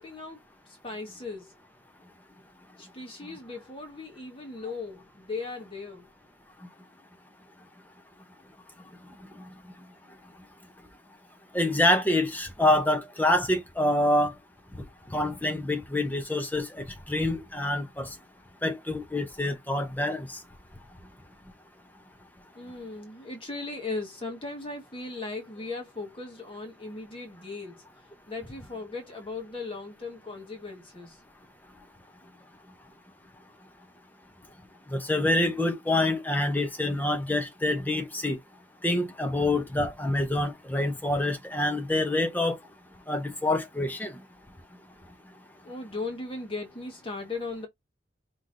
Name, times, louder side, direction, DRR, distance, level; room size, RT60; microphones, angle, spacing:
voice 1, 0.0-1.5 2.8-6.1 22.5-27.8 28.3-31.2 45.6-47.7, left 3 dB, 30° left, 1.6 m, -38 dB
voice 2, 11.5-14.3 15.1-18.1 18.6-20.4 34.9-38.4 38.8-42.6 43.1-44.1, left 1 dB, 10° left, 0.8 m, -26 dB
5.7 x 3.1 x 2.7 m
head